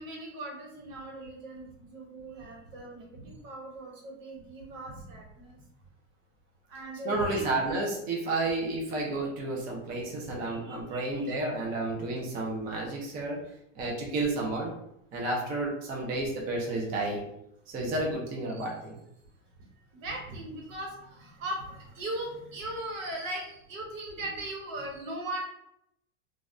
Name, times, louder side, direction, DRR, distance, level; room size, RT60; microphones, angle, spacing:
voice 1, 0.0-5.6 6.7-7.5 10.2-11.3 18.5-18.7 19.9-25.4, right 1 dB, 80° right, -1 dB, 1.2 m, -39 dB
voice 2, 7.0-13.4 13.7-14.7 15.1-17.3 17.7-19.0, right 2 dB, 25° right, -2 dB, 0.5 m, -31 dB
3.2 x 2.3 x 2.5 m, 0.78 s
supercardioid pair, 150°, 38 cm